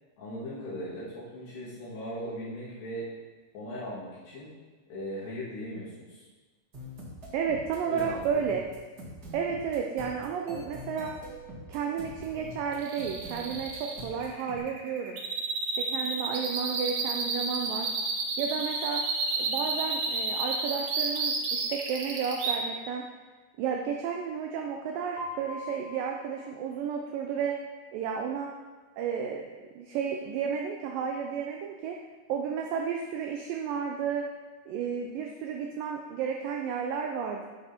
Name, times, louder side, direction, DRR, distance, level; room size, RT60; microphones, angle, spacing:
voice 1, 0.2-3.1 3.5-4.5 4.9-6.3 7.8-8.4, equal, 80° left, -9 dB, 4.3 m, -38 dB
sound 1, 6.7-14.6, right 1 dB, 35° right, 1.9 m, -44 dB
voice 2, 7.3-8.6 9.3-11.1 11.7-15.2 15.8-17.9 18.4-19.0 19.4-23.0 23.6-27.6 27.9-28.5 29.0-32.0 32.3-34.3 34.7-37.5, right 7 dB, 85° right, 2 dB, 1.9 m, -32 dB
sound 2, 12.8-22.5, right 4 dB, 65° right, 2.1 m, -31 dB
Piano, 25.2-27.2, left 2 dB, 60° left, 2.0 m, -42 dB
10.0 x 6.8 x 4.3 m, 1.3 s
omnidirectional pair, 4.8 m